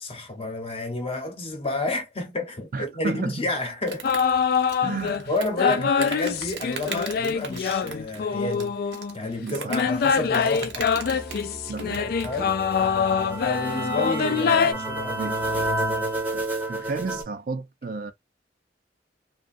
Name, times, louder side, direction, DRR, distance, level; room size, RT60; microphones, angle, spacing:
voice 1, 0.0-4.1 5.3-10.9 12.0-15.3 15.7-16.1, left 2 dB, 35° left, 0.9 m, -31 dB
voice 2, 2.7-3.5 4.8-5.3 5.8-5.9 9.4-9.7 11.7-12.0 15.1-15.4 16.3-16.4 16.7-18.1, right 3 dB, 55° right, 0.4 m, -32 dB
Insect, 3.9-12.4, right 6 dB, 90° right, 0.8 m, -40 dB
sound 1, 4.0-5.2 5.6-9.2 9.7-14.7, left 6 dB, 60° left, 0.3 m, -24 dB
sound 2, 10.7-17.2, right 1 dB, 10° right, 0.7 m, -31 dB
2.8 x 2.4 x 2.5 m
head